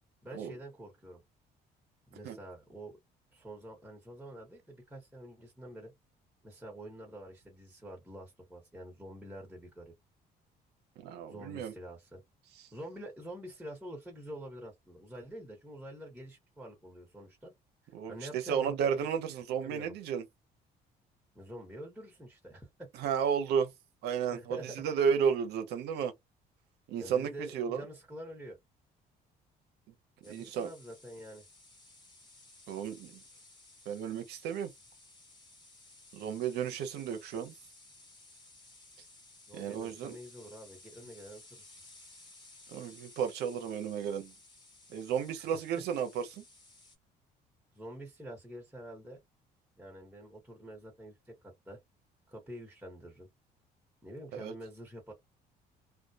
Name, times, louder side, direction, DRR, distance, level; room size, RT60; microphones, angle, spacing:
voice 1, 0.2-1.2 2.1-3.0 3.3-5.9 6.4-9.9 11.3-12.2 12.7-17.5 18.1-19.0 19.4-19.9 21.3-22.9 24.3-24.7 27.0-28.6 30.2-31.4 39.5-41.6 45.4-45.5 47.7-49.2 49.8-51.3 51.6-51.8 52.3-53.3 54.0-55.1, right 1 dB, 5° right, 1.1 m, -47 dB
voice 2, 11.0-11.7 17.9-20.2 23.0-23.7 24.0-26.1 26.9-27.8 30.3-30.7 32.7-33.2 33.9-34.7 36.1-37.5 39.5-40.2 42.7-44.3 44.9-46.4 54.3-54.5, right 7 dB, 80° right, 0.6 m, -33 dB
sound 1, 30.2-47.0, left 2 dB, 25° left, 1.2 m, -57 dB
2.2 x 2.1 x 2.7 m
cardioid pair, 110°, 17 cm